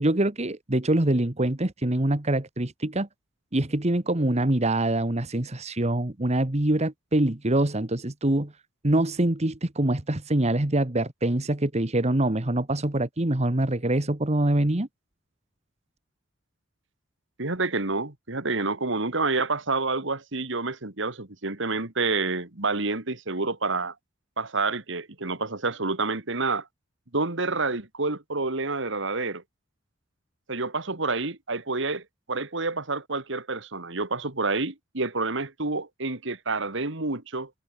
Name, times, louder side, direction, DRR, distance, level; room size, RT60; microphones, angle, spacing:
voice 1, 0.0-3.1 3.5-8.5 8.8-14.9, right 1 dB, 35° right, 1.5 m, -24 dB
voice 2, 17.4-23.9 24.4-26.7 27.1-29.4 30.5-37.5, right 3 dB, 65° right, 2.4 m, -28 dB
head